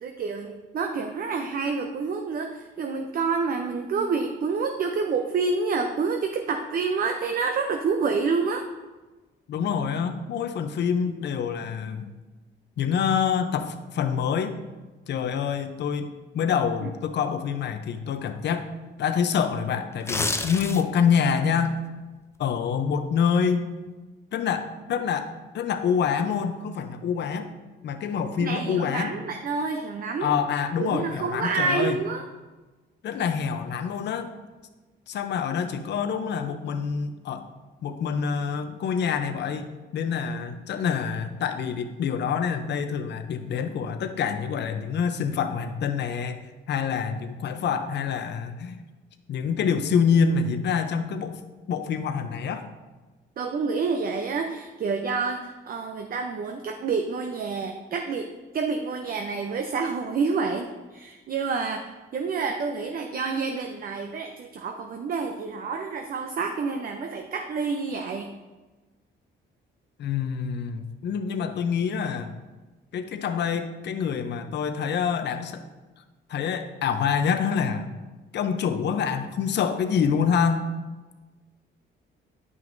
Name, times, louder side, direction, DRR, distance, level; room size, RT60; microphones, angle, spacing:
voice 1, 0.0-8.7 16.8-16.9 28.4-30.3 30.8-32.2 53.4-68.3, right 4 dB, 45° right, 4 dB, 0.6 m, -28 dB
voice 2, 9.5-12.1 12.8-14.6 15.1-18.7 19.0-21.8 22.4-23.7 24.3-27.5 27.8-29.1 30.2-32.0 33.0-34.3 35.1-37.5 37.8-39.7 39.9-46.4 46.7-48.8 49.3-51.4 51.7-52.7 70.0-72.3 72.9-75.6 76.3-77.9 78.3-80.7, left 6 dB, 60° left, 9 dB, 0.6 m, -26 dB
sound 1, 19.9-21.1 21.5-21.7, left 2 dB, 15° left, 0.4 m, -28 dB
9.2 x 5.9 x 2.6 m, 1.2 s
cardioid pair, 90°, 20 cm